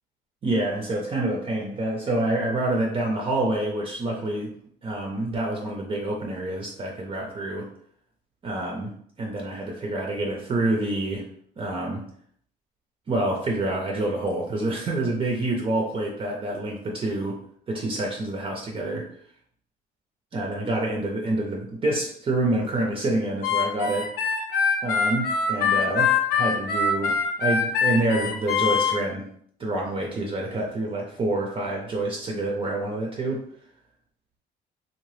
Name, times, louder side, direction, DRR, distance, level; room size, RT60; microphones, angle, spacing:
voice 1, 0.4-4.5 4.8-7.7 8.4-8.9 9.2-11.3 11.6-12.1 13.1-17.4 17.7-19.1 20.3-24.1 24.8-29.3 29.6-33.4, right 2 dB, 30° right, -1 dB, 0.5 m, -27 dB
Harmonica, 23.4-29.0, left 5 dB, 70° left, 0.7 m, -23 dB
2.7 x 2.1 x 3.2 m, 0.64 s
cardioid pair, 110°, 17 cm